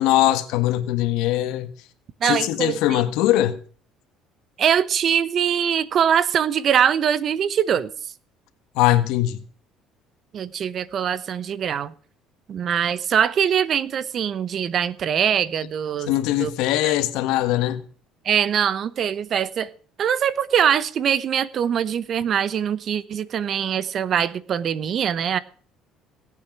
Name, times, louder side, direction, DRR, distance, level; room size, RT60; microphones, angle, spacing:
voice 1, 0.0-1.7 2.2-3.6 8.7-9.4 16.1-17.8, left 14 dB, 80° left, 1.4 m, -21 dB
voice 2, 2.2-3.0 4.6-7.9 10.3-11.9 12.5-16.1 16.4-16.5 16.8-16.9 18.2-19.7 20.0-25.4, right 8 dB, 45° right, 1.0 m, -22 dB
18.0 x 8.6 x 6.0 m
cardioid pair, 120°, 0 cm